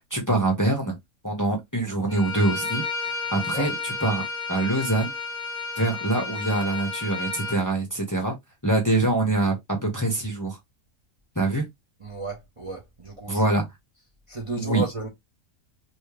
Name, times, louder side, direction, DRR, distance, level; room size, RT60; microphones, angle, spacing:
voice 1, 0.1-1.0 1.2-4.2 4.5-5.1 5.8-8.3 8.6-9.6 9.8-10.6 11.4-11.7 13.3-13.7 14.6-14.8, right 2 dB, 15° left, 1.0 m, -24 dB
Bowed string instrument, 2.1-7.6, left 4 dB, 80° right, 1.6 m, -32 dB
voice 2, 3.3-3.7 12.0-13.4 14.3-15.1, right 2 dB, 25° right, 1.0 m, -33 dB
3.2 x 3.2 x 3.3 m
omnidirectional pair, 1.4 m